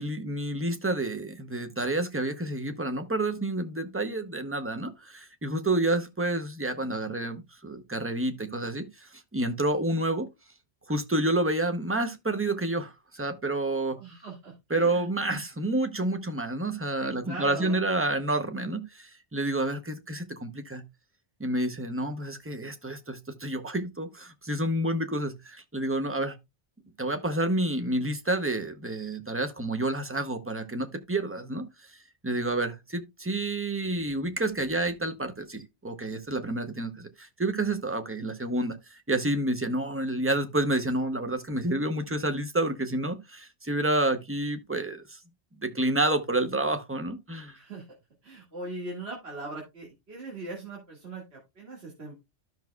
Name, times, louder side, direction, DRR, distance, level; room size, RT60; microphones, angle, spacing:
voice 1, 0.0-10.3 10.9-14.0 14.7-20.8 21.4-26.4 27.0-32.0 32.2-45.2 45.6-47.6, right 2 dB, 15° right, 0.7 m, -29 dB
voice 2, 14.0-15.4 17.0-17.8 47.5-47.9 48.2-52.2, right 2 dB, 65° right, 2.3 m, -40 dB
13.0 x 6.2 x 2.3 m
omnidirectional pair, 1.2 m